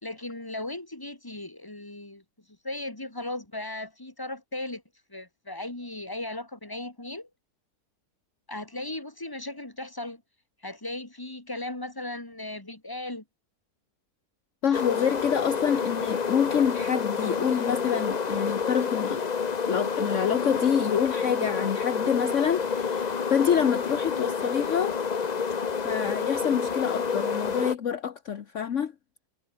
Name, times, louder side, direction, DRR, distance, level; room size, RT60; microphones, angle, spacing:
voice 1, 0.0-2.2 2.6-4.8 5.1-7.3 8.5-10.2 10.6-13.2, left 2 dB, 15° left, 2.8 m, -37 dB
voice 2, 14.6-19.2 19.7-24.9 25.8-28.9, left 8 dB, 55° left, 1.3 m, -27 dB
sound 1, 14.7-27.7, left 5 dB, 35° left, 0.8 m, -29 dB
omnidirectional pair, 1.7 m